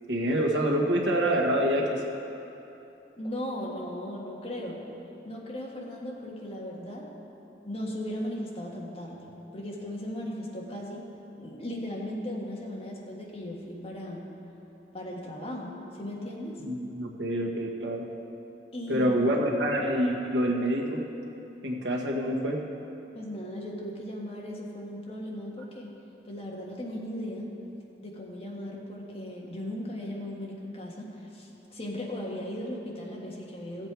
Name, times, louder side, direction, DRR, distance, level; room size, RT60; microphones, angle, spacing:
voice 1, 0.1-2.0 16.6-18.1 18.9-21.0 21.6-22.6, equal, 80° right, -1 dB, 1.5 m, -26 dB
voice 2, 3.2-4.8 5.2-7.1 7.6-11.1 11.4-14.3 14.9-16.6 18.7-19.2 23.1-25.9 26.2-27.5 28.0-33.9, left 1 dB, 30° left, -3 dB, 1.5 m, -37 dB
15.5 x 7.5 x 4.7 m, 3.0 s
head